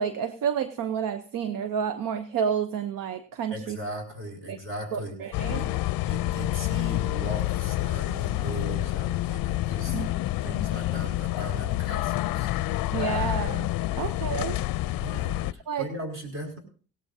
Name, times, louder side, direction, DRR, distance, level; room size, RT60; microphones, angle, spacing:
voice 1, 0.0-3.8 4.5-4.6 4.9-5.6 9.9-10.1 12.9-13.7 14.0-14.6 15.7-15.8, right 7 dB, 65° right, 11 dB, 0.9 m, -30 dB
voice 2, 3.5-5.7 6.1-10.0 10.4-12.5 13.9-14.1 15.0-16.6, equal, 35° right, 2 dB, 5.2 m, -38 dB
sound 1, 5.3-15.5, left 16 dB, 70° left, 0.5 m, -28 dB
18.0 x 17.0 x 2.7 m, 0.42 s
cardioid pair, 80°, 36 cm